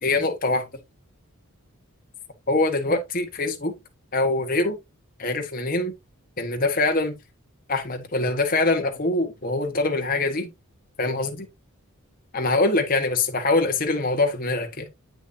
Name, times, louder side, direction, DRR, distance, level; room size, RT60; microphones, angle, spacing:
voice 1, 0.0-0.7 2.5-3.7 4.1-4.8 5.2-5.9 6.4-7.2 7.7-10.5 11.0-11.5 12.3-14.8, left 2 dB, 40° left, 1.4 m, -23 dB
8.4 x 6.2 x 2.7 m
head